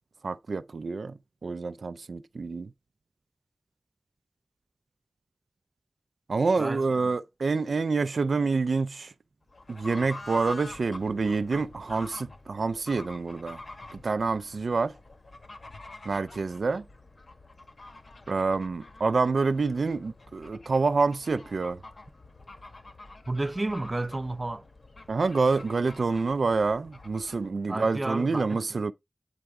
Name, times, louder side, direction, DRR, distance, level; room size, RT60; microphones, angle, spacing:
voice 1, 0.2-1.1 1.4-2.7 6.3-9.1 9.7-13.6 14.0-14.9 16.1-16.8 18.3-21.8 25.1-28.9, right 4 dB, 90° right, 0.3 m, -27 dB
voice 2, 6.6-7.1 23.3-24.6 27.7-28.6, right 2 dB, 35° right, 0.5 m, -31 dB
Fowl / Bird, 9.5-27.5, left 2 dB, 60° left, 1.1 m, -47 dB
8.9 x 4.7 x 3.4 m
wide cardioid pair, 75°, 0 cm